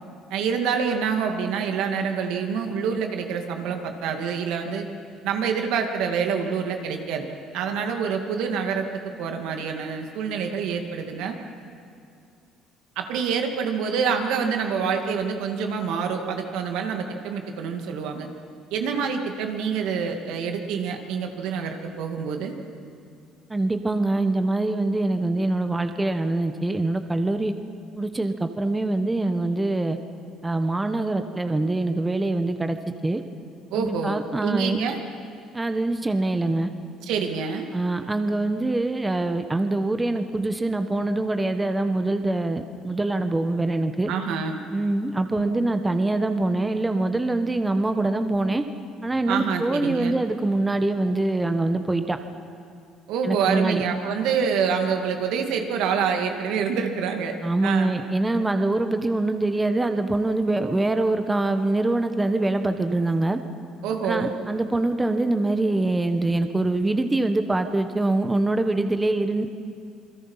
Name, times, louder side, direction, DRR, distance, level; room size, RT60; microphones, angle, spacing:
voice 1, 0.3-4.8 5.2-7.3 7.5-8.9 9.2-11.4 13.0-18.3 18.7-22.6 33.7-35.0 37.0-37.7 44.1-44.6 49.3-50.2 53.1-57.3 57.6-57.9 63.8-64.3, right 6 dB, 80° right, 4 dB, 2.3 m, -26 dB
voice 2, 23.5-27.5 27.9-30.0 30.4-32.8 33.0-33.2 33.7-34.8 35.5-36.7 37.7-44.1 44.7-48.6 49.0-52.2 53.2-53.8 57.4-63.4 64.0-69.5, right 2 dB, 15° right, 8 dB, 1.1 m, -24 dB
28.0 x 21.0 x 5.7 m, 2.4 s
cardioid pair, 105°, 0 cm